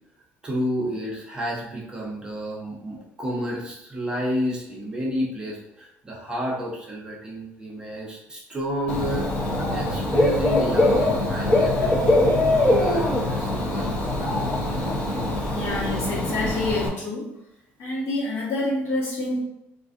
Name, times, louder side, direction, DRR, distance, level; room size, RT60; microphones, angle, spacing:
voice 1, 0.4-14.7, equal, 15° right, -4 dB, 0.7 m, -31 dB
Dog / Bird, 8.9-16.9, left 1 dB, 25° left, 0.7 m, -22 dB
voice 2, 15.5-17.3 17.8-19.4, left 2 dB, 55° left, -5 dB, 1.3 m, -27 dB
3.8 x 2.5 x 2.5 m, 0.82 s
cardioid pair, 150°, 5 cm